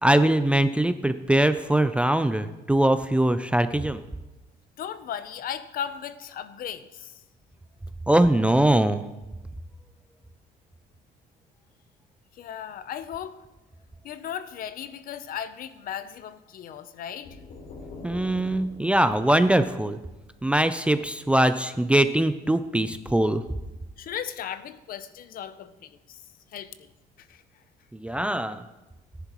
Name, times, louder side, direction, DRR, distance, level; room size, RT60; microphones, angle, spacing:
voice 1, 0.0-4.0 8.1-9.0 18.0-20.0 20.4-23.4 27.9-28.6, right 1 dB, 5° right, 11 dB, 0.4 m, -22 dB
voice 2, 4.8-7.2 12.3-13.4 14.0-17.4 24.0-26.9 27.2-27.6, left 9 dB, 60° left, 12 dB, 0.7 m, -37 dB
sound 1, 17.2-21.0, left 3 dB, 75° left, 3.8 m, -45 dB
14.5 x 10.5 x 3.1 m, 1.1 s
cardioid pair, 110°, 17 cm